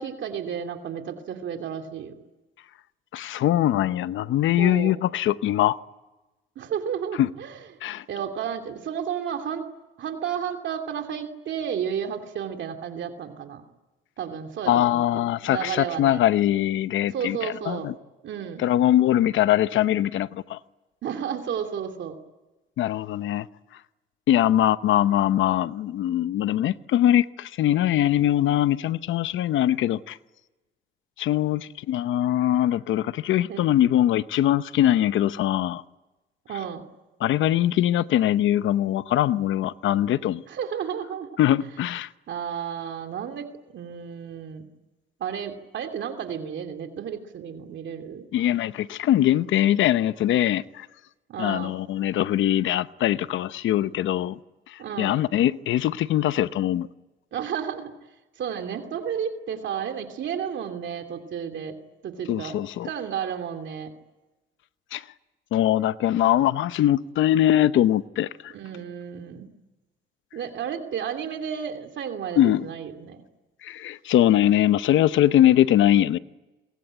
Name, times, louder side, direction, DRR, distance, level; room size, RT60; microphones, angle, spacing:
voice 1, 0.0-2.1 4.6-5.0 6.6-7.7 8.1-9.6 10.0-13.6 14.2-16.2 17.1-17.9 18.2-18.6 21.0-22.2 33.5-33.9 36.5-36.8 40.5-41.4 42.3-43.5 43.7-44.7 45.2-48.2 51.3-51.7 54.8-55.2 57.3-57.9 58.4-61.7 62.0-62.5 62.8-63.9 68.5-69.5 70.3-73.2, right 8 dB, 70° right, 2.8 m, -32 dB
voice 2, 3.1-5.8 7.2-7.3 7.8-8.0 14.7-17.9 18.6-20.6 22.8-23.5 24.3-30.2 31.2-35.8 37.2-40.4 41.4-42.1 48.3-50.9 51.4-54.4 54.7-56.9 62.3-62.9 64.9-65.0 65.5-68.5 72.4-72.7 73.6-76.2, left 12 dB, 80° left, 0.9 m, -22 dB
27.0 x 22.5 x 9.0 m
cardioid pair, 90°, 20 cm